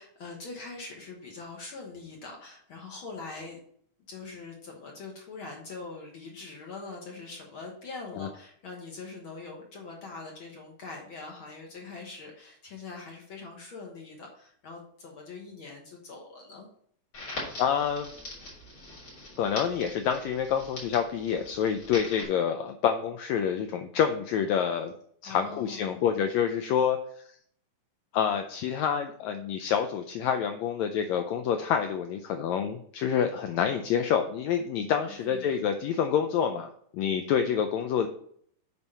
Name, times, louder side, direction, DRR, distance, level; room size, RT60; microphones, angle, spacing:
voice 1, 0.0-3.6 4.1-16.7 25.2-26.0 35.1-35.6, left 3 dB, 60° left, 0 dB, 1.4 m, -43 dB
Crackle, 17.1-22.2, left 2 dB, 35° left, 3.8 m, -42 dB
voice 2, 17.6-18.1 19.4-24.9 25.2-27.3 28.1-38.1, left 8 dB, 90° left, 7 dB, 1.5 m, -27 dB
8.6 x 4.6 x 5.4 m, 0.64 s
omnidirectional pair, 3.8 m